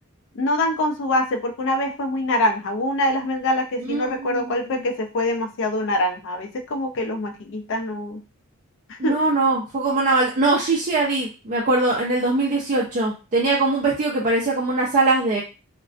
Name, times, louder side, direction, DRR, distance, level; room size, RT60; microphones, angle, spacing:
voice 1, 0.3-8.2 8.9-9.3, left 1 dB, 60° left, 4 dB, 0.4 m, -24 dB
voice 2, 9.0-15.4, right 2 dB, 35° right, -4 dB, 0.4 m, -21 dB
2.4 x 2.1 x 2.4 m, 0.30 s
head